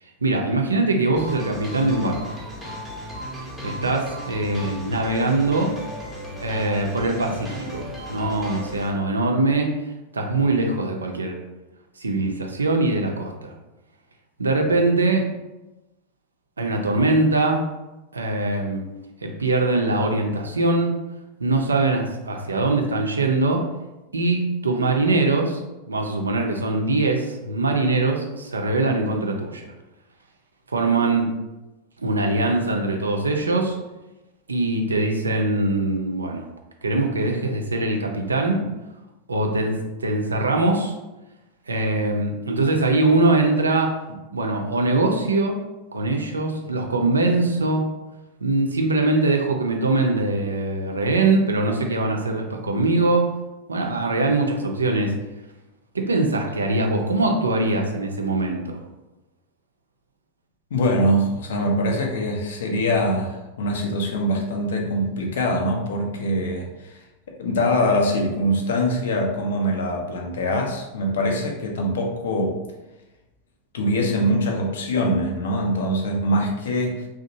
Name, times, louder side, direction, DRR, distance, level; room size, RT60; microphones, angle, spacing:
voice 1, 0.2-2.3 3.6-5.7 6.4-9.7 10.1-11.4 12.0-13.5 14.4-15.3 16.6-17.7 18.1-18.8 19.2-21.0 21.4-23.6 24.1-29.6 30.7-31.3 32.0-33.8 34.5-36.5 36.8-38.6 39.3-41.0 41.7-43.9 44.3-45.6 45.9-47.9 48.4-53.3 53.7-55.1 55.9-58.8, right 2 dB, 75° right, 2 dB, 0.4 m, -22 dB
sound 1, 1.2-8.9, equal, ahead, 0.7 m, -36 dB
voice 2, 60.7-67.0 67.4-72.6 73.7-77.1, equal, 60° left, 1 dB, 0.5 m, -23 dB
2.8 x 2.0 x 2.7 m, 1.0 s
figure-of-eight pair, 90°, 0 cm